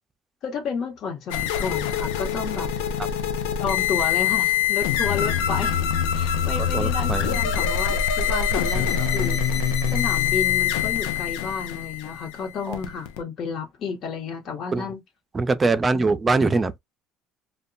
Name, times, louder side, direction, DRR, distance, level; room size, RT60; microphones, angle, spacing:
voice 1, 0.4-2.7 3.6-5.8 6.1-9.4 9.9-15.0, left 5 dB, 55° left, 1.0 m, -31 dB
sound 1, 1.3-13.2, left 8 dB, 90° left, 0.4 m, -24 dB
voice 2, 6.7-7.4 8.5-9.2 12.7-12.8 14.7-14.9 15.3-16.8, right 3 dB, 25° right, 0.4 m, -24 dB
2.2 x 2.1 x 3.7 m
supercardioid pair, 95°, 0 cm